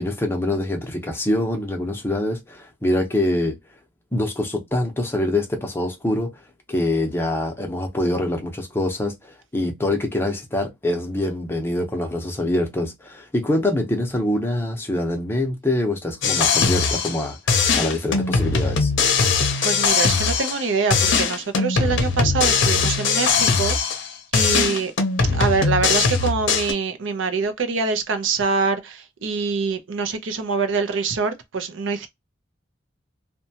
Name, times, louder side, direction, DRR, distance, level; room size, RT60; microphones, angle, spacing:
voice 1, 0.0-3.6 4.1-6.3 6.7-17.4 17.8-18.9, left 1 dB, 10° left, 0.6 m, -24 dB
sound 1, 16.2-17.2 17.5-20.6 20.9-24.1 24.3-26.7, left 5 dB, 70° left, 0.6 m, -20 dB
voice 2, 19.6-24.9 25.3-32.1, right 4 dB, 80° right, 0.5 m, -25 dB
2.7 x 2.2 x 2.7 m
head